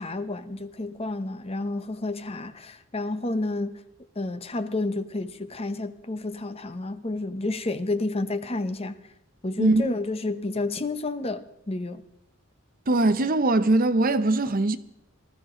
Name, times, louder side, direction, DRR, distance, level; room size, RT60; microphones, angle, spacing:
voice 1, 0.0-3.8 4.1-9.0 9.4-12.0, left 2 dB, 30° left, 0.9 m, -30 dB
voice 2, 9.6-9.9 12.9-14.8, right 2 dB, 45° right, 0.8 m, -21 dB
20.0 x 14.0 x 3.8 m
head